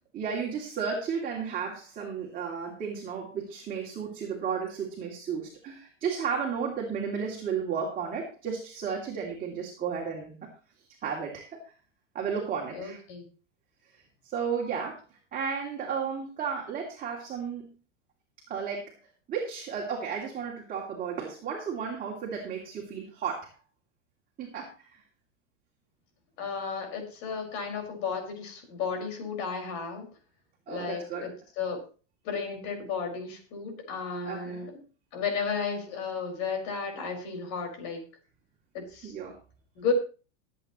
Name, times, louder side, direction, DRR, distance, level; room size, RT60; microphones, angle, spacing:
voice 1, 0.1-10.5 11.0-11.6 12.1-13.0 13.9-17.7 18.5-19.0 19.3-23.5 24.4-25.0 30.7-31.3 34.2-34.6 39.0-39.4, right 6 dB, 25° right, -1 dB, 2.9 m, -33 dB
voice 2, 12.7-13.2 26.4-30.1 30.7-31.3 31.6-31.8 32.2-34.7 35.1-38.0 38.7-39.1 39.8-39.9, left 6 dB, 45° left, 3 dB, 5.5 m, -33 dB
21.0 x 8.6 x 3.1 m, 0.34 s
supercardioid pair, 135°, 36 cm